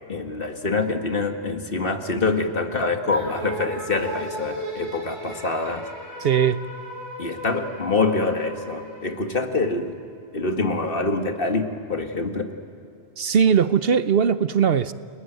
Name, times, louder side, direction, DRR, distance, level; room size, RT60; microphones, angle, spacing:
voice 1, 0.1-5.9 7.2-10.0 10.3-12.5, left 3 dB, 55° left, 5 dB, 2.0 m, -25 dB
sound 1, 3.1-9.7, right 1 dB, 80° right, 7.5 m, -36 dB
voice 2, 6.2-6.6 13.2-14.9, right 7 dB, 60° right, 13 dB, 0.9 m, -19 dB
30.0 x 21.0 x 9.1 m, 2.7 s
omnidirectional pair, 1.1 m